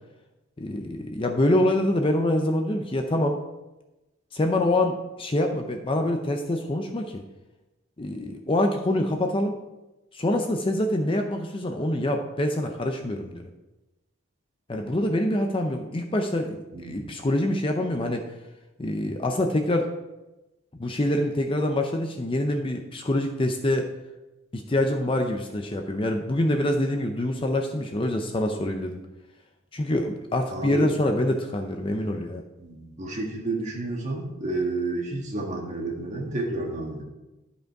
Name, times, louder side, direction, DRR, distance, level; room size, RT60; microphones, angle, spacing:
voice 1, 0.6-3.4 4.3-7.2 8.0-9.5 10.1-13.5 14.7-18.3 18.8-19.9 20.7-23.9 24.5-29.0 29.7-32.4, left 1 dB, 25° left, 4 dB, 0.5 m, -25 dB
voice 2, 30.5-30.9 32.6-37.0, right 2 dB, 35° right, -1 dB, 1.7 m, -30 dB
11.5 x 5.2 x 4.7 m, 1.0 s
head